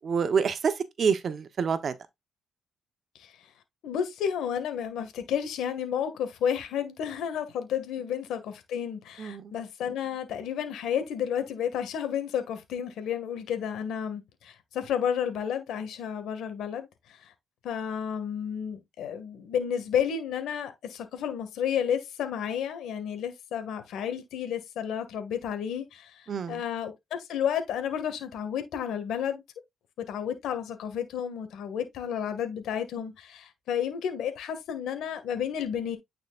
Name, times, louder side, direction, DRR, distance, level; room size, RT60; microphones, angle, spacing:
voice 1, 0.0-1.9 9.2-9.5 26.3-26.6, right 6 dB, 50° right, 1.0 m, -27 dB
voice 2, 3.8-17.3 17.6-29.4 30.0-36.0, left 8 dB, 80° left, 2.0 m, -31 dB
9.3 x 5.0 x 2.5 m
cardioid pair, 90°, 0 cm